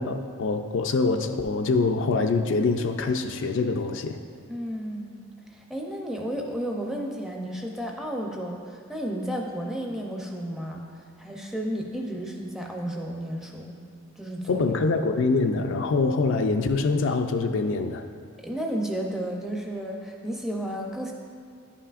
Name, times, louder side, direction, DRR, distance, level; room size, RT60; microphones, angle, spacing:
voice 1, 0.0-4.2 14.5-18.1, left 3 dB, 60° left, 6 dB, 0.3 m, -24 dB
voice 2, 4.5-5.2 5.5-13.7 14.2-14.6 18.4-21.1, equal, ahead, 0 dB, 0.5 m, -32 dB
10.5 x 5.7 x 2.4 m, 2.1 s
head